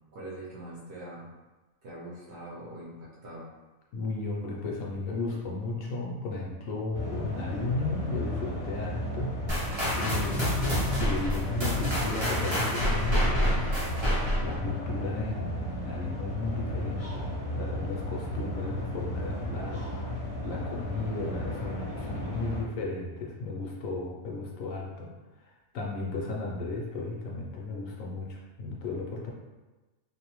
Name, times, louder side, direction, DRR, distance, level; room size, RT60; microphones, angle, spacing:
voice 1, 0.1-1.3 1.8-3.5, right 1 dB, 60° right, -6 dB, 0.8 m, -43 dB
voice 2, 3.9-9.3 9.9-13.7 14.4-19.8 20.4-25.1 25.7-29.3, left 3 dB, 70° left, -2 dB, 0.9 m, -34 dB
sound 1, 6.9-22.6, left 1 dB, 40° left, 0.6 m, -34 dB
sound 2, 9.5-14.6, equal, 30° right, 0.5 m, -28 dB
2.6 x 2.1 x 2.9 m, 1.2 s
omnidirectional pair, 1.5 m